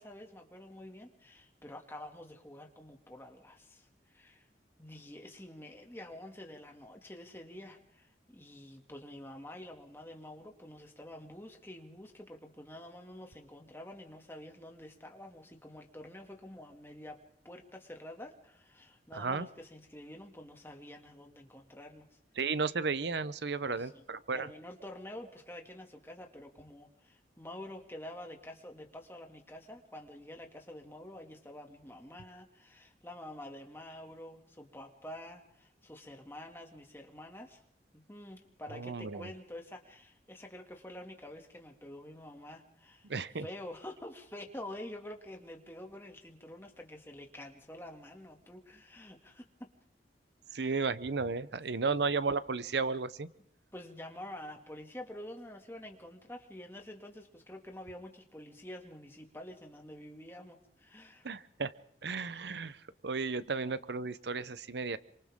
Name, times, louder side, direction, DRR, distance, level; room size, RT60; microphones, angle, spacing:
voice 1, 0.0-4.5 4.8-22.2 23.6-24.0 24.3-37.6 37.9-43.1 43.4-49.7 50.5-50.8 51.8-52.1 53.7-61.3, left 1 dB, 15° left, 3 dB, 2.3 m, -48 dB
voice 2, 19.1-19.5 22.4-24.5 38.7-39.3 43.1-43.5 50.5-53.3 61.2-61.7 62.0-65.0, right 4 dB, 80° right, 15 dB, 0.8 m, -34 dB
28.0 x 25.5 x 3.7 m, 0.70 s
head